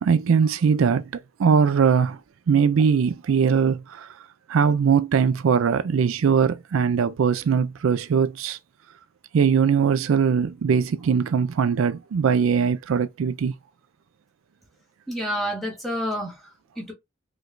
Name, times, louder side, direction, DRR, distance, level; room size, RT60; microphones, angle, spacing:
voice 1, 0.0-2.2 2.5-4.1 4.5-8.6 9.3-13.5, right 6 dB, 85° right, 0.4 m, -21 dB
voice 2, 15.1-16.9, equal, ahead, 1.7 m, -29 dB
4.7 x 3.2 x 2.5 m
head